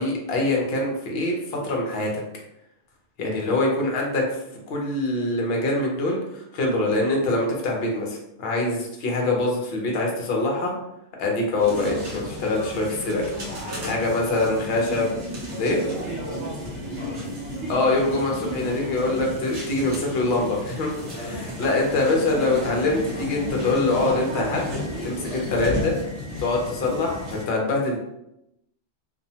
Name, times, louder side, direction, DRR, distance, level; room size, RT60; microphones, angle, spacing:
voice 1, 0.0-2.1 3.2-4.4 4.7-10.7 11.2-13.2 13.8-15.1 15.6-15.8 17.7-20.9 21.3-24.7 25.0-25.9 26.4-28.0, left 2 dB, 60° left, 0 dB, 0.8 m, -24 dB
voice 2, 3.2-3.6 13.5-14.7 16.2-17.3 21.0-21.9 25.2-25.4, left 1 dB, 20° left, -9 dB, 0.9 m, -39 dB
sound 1, 11.6-27.4, left 1 dB, 65° right, 1.1 m, -33 dB
2.7 x 2.1 x 2.7 m, 0.84 s
omnidirectional pair, 1.3 m